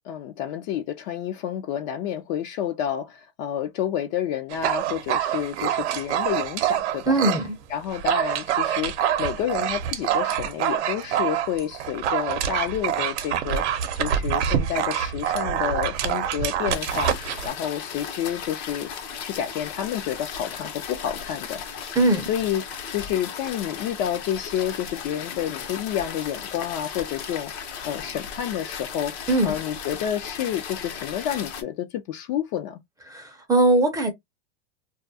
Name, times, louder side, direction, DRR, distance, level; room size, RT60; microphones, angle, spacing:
voice 1, 0.1-7.2 7.7-13.6 14.0-18.9 19.2-21.6 22.3-32.8, left 10 dB, 40° left, 0.4 m, -29 dB
Dog, 4.5-7.5 7.8-17.5, right 10 dB, 75° right, 0.7 m, -26 dB
voice 2, 7.1-7.6 21.9-22.3 29.3-29.5 33.1-34.1, right 2 dB, 10° right, 0.5 m, -20 dB
sound 1, 16.7-31.6, left 7 dB, 70° left, 0.9 m, -36 dB
2.3 x 2.2 x 2.6 m
supercardioid pair, 140°, 34 cm